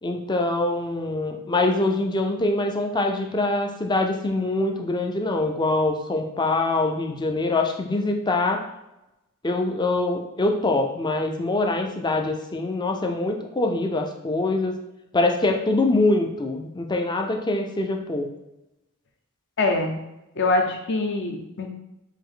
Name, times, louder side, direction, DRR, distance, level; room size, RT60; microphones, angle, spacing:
voice 1, 0.0-8.6 9.4-14.8 15.1-18.3, left 2 dB, 20° left, 3 dB, 0.5 m, -24 dB
voice 2, 19.6-20.0 20.4-21.7, left 2 dB, 55° left, 4 dB, 0.7 m, -24 dB
5.4 x 2.6 x 3.7 m, 0.91 s
head